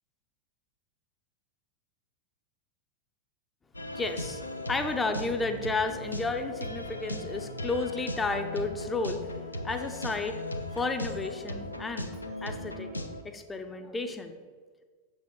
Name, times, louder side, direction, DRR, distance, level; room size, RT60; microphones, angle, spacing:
sound 1, 3.7-13.2, left 1 dB, 85° left, 0.5 m, -37 dB
voice 1, 3.9-4.4 4.7-9.3 9.6-12.9 13.2-14.4, left 3 dB, 15° left, 7 dB, 0.6 m, -32 dB
6.6 x 5.2 x 4.0 m, 1.5 s
figure-of-eight pair, 90°, 0 cm